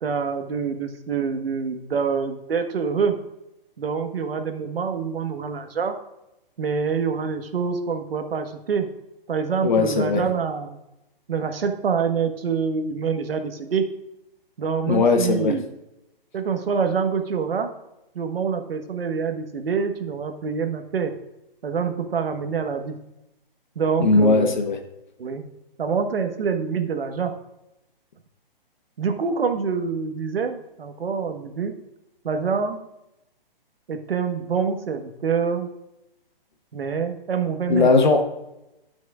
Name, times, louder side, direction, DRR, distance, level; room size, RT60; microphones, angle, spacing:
voice 1, 0.0-3.1 3.8-6.0 6.6-8.9 9.3-10.8 11.3-13.9 14.6-15.7 16.3-17.7 18.1-21.1 21.6-23.0 23.7-24.6 25.2-25.4 25.8-27.3 29.0-31.7 32.2-32.8 33.9-35.7 36.7-37.9, right 6 dB, 80° right, 7 dB, 1.3 m, -26 dB
voice 2, 9.6-10.2 14.9-15.5 24.0-24.8 37.7-38.2, left 3 dB, 55° left, 5 dB, 1.1 m, -18 dB
16.5 x 6.2 x 2.4 m, 0.90 s
hypercardioid pair, 180°, 29 cm